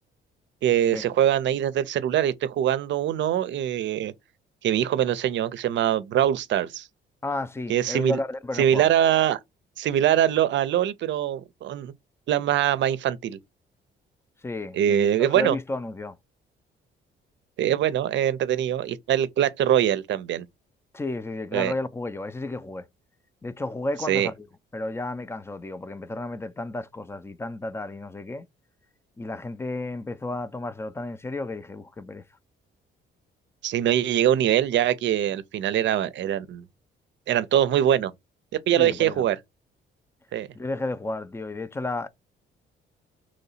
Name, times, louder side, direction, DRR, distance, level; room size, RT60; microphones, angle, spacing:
voice 1, 0.6-4.1 4.6-6.9 7.7-8.2 8.6-9.4 9.8-11.9 12.3-13.4 14.7-15.6 17.6-20.5 21.5-21.7 24.1-24.3 33.6-36.6 37.3-38.1 38.7-39.4 40.3-40.5, right 11 dB, 65° right, 0.5 m, -23 dB
voice 2, 7.2-8.9 14.4-16.2 20.9-22.9 23.4-24.5 24.7-28.5 29.2-32.2 38.7-39.3 40.5-42.1, left 2 dB, 15° left, 0.4 m, -32 dB
3.1 x 2.8 x 4.1 m
cardioid pair, 90°, 20 cm